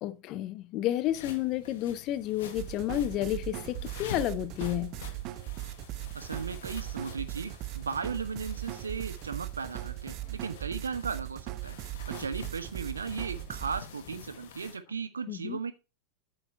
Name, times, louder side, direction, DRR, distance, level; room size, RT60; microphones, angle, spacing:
voice 1, 0.0-5.0 15.3-15.6, left 13 dB, 40° left, 0.8 m, -31 dB
sound 1, 1.0-14.8, left 8 dB, 55° left, 1.8 m, -48 dB
sound 2, 2.5-13.8, right 16 dB, 40° right, 0.7 m, -39 dB
voice 2, 6.1-11.8 12.1-15.7, right 5 dB, 75° right, 1.1 m, -36 dB
8.9 x 6.5 x 4.5 m
figure-of-eight pair, 90°, 0 cm